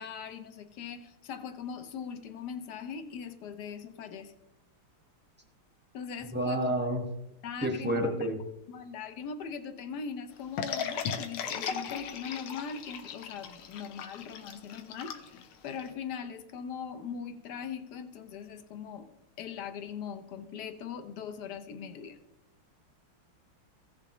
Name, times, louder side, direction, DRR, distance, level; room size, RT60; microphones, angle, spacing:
voice 1, 0.0-4.3 5.9-6.9 7.4-8.3 8.7-19.1 19.4-22.2, left 7 dB, 65° left, 9 dB, 1.1 m, -40 dB
voice 2, 6.3-7.0 7.6-8.4, right 1 dB, 10° right, 2 dB, 0.8 m, -29 dB
sound 1, 10.6-15.9, left 7 dB, 85° left, 1.7 m, -37 dB
15.5 x 6.9 x 3.0 m, 0.92 s
omnidirectional pair, 2.3 m